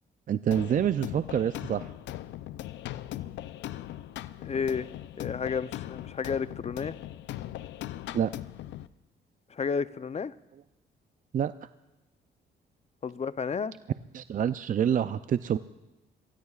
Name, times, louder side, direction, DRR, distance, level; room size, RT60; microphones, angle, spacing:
voice 1, 0.3-1.9 8.1-8.3 11.3-11.5 14.1-15.6, right 9 dB, 45° right, 12 dB, 0.5 m, -27 dB
sound 1, 0.5-8.9, left 13 dB, 80° left, 0.5 m, -39 dB
voice 2, 4.4-4.9 5.2-6.9 9.5-10.3 13.0-13.7, left 6 dB, 35° left, 14 dB, 0.6 m, -31 dB
27.0 x 19.0 x 2.4 m, 1.0 s
cardioid pair, 70°, 18 cm